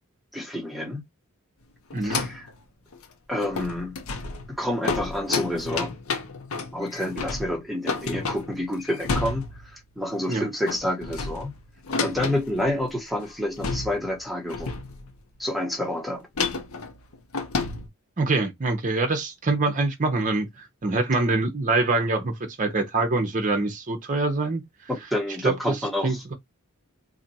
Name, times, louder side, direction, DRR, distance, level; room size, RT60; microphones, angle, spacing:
voice 1, 0.3-1.0 2.0-2.5 3.3-4.0 4.5-5.9 6.7-11.5 12.0-14.8 15.4-16.3 24.9-26.2, left 1 dB, ahead, 0.9 m, -29 dB
sound 1, 1.9-2.5 2.9-3.0 3.4-9.7 10.1-10.4 10.7-12.9 13.2-13.3 13.6-14.2 14.5-15.2 16.4-17.9, left 4 dB, 75° left, 0.7 m, -31 dB
voice 2, 18.2-24.6 25.4-26.3, right 3 dB, 35° right, 0.7 m, -25 dB
2.7 x 2.4 x 4.0 m
head